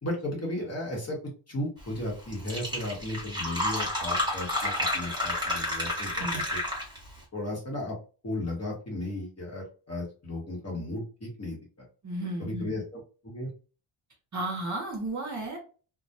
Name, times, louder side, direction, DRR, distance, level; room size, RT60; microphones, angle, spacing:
voice 1, 0.0-1.2 1.5-6.6 7.3-8.0 8.2-11.6 12.4-13.5, left 1 dB, 30° left, -2 dB, 0.9 m, -35 dB
Fill (with liquid), 2.0-2.1 2.3-7.1, left 1 dB, 10° right, 0.8 m, -30 dB
voice 2, 12.0-12.8 14.3-15.6, right 2 dB, 35° right, 1 dB, 0.7 m, -33 dB
2.2 x 2.1 x 2.6 m, 0.37 s
wide cardioid pair, 145°, 49 cm